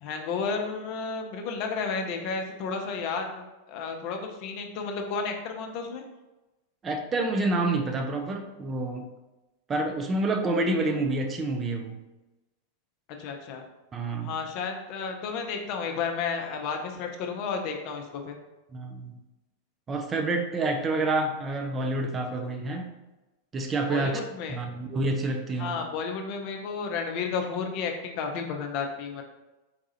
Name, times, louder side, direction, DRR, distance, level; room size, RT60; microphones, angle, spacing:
voice 1, 0.0-6.0 13.2-13.6 14.2-18.4 23.9-24.6 25.6-29.2, left 5 dB, 45° left, 3 dB, 0.5 m, -32 dB
voice 2, 6.8-9.1 9.7-12.0 13.9-14.4 18.7-19.1 19.9-22.9 23.5-24.2 24.5-25.8, right 2 dB, 20° right, 3 dB, 0.4 m, -28 dB
4.0 x 2.3 x 2.7 m, 1.0 s
figure-of-eight pair, 90°, 0 cm